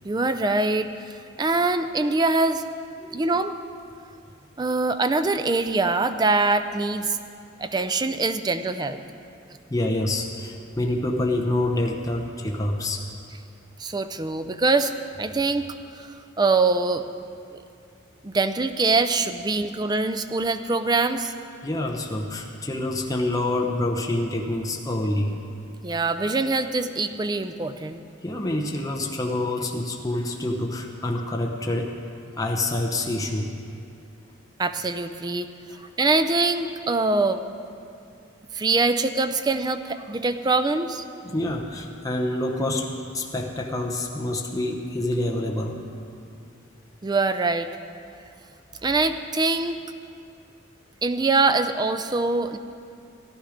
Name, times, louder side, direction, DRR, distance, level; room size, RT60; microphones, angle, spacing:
voice 1, 0.0-2.6 3.1-3.6 4.6-7.2 7.6-9.0 13.8-14.9 15.2-15.7 15.9-16.1 16.4-17.0 18.2-21.3 25.8-28.0 34.6-35.5 36.0-37.4 38.5-41.1 47.0-47.7 48.8-49.8 51.0-52.6, right 3 dB, 20° right, 10 dB, 0.4 m, -23 dB
voice 2, 9.7-13.0 21.6-25.4 28.2-32.0 32.4-33.5 35.7-35.8 41.2-45.8, left 1 dB, 15° left, 0 dB, 0.8 m, -27 dB
15.0 x 11.0 x 5.1 m, 2.5 s
head